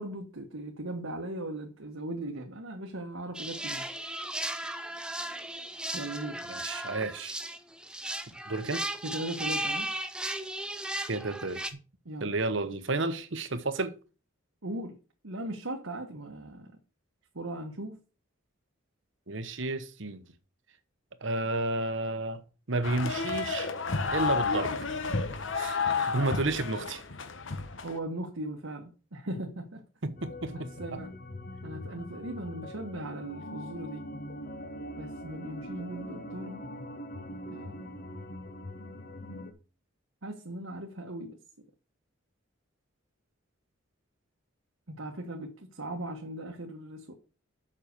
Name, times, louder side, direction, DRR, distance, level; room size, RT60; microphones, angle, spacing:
voice 1, 0.0-4.0 5.9-6.4 9.0-9.9 12.0-12.3 14.6-15.0 15.2-16.7 17.3-18.0 27.8-29.8 30.5-31.1 31.6-34.0 35.0-36.6 37.5-38.1 40.2-41.4 44.9-47.1, right 1 dB, 80° right, 1.5 m, -38 dB
sound 1, 3.3-11.7, right 1 dB, 5° right, 0.7 m, -36 dB
voice 2, 6.5-7.4 8.3-8.8 11.1-11.6 12.2-13.9 19.3-20.2 21.2-23.7 24.1-24.8 25.5-27.0 30.0-31.0, right 2 dB, 60° right, 1.1 m, -32 dB
sound 2, 22.8-28.0, left 4 dB, 65° left, 1.1 m, -31 dB
sound 3, 30.2-39.5, equal, 45° left, 1.3 m, -42 dB
7.6 x 6.0 x 6.7 m
head